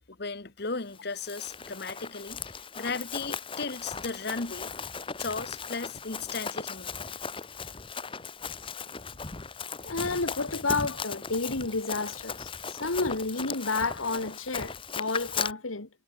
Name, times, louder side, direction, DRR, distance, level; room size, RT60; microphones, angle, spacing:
voice 1, 0.0-4.7 5.2-6.9, left 4 dB, 55° left, 1.3 m, -36 dB
Run, 0.9-15.5, left 5 dB, 25° left, 1.0 m, -37 dB
voice 2, 9.9-15.9, left 3 dB, 90° left, 1.9 m, -31 dB
head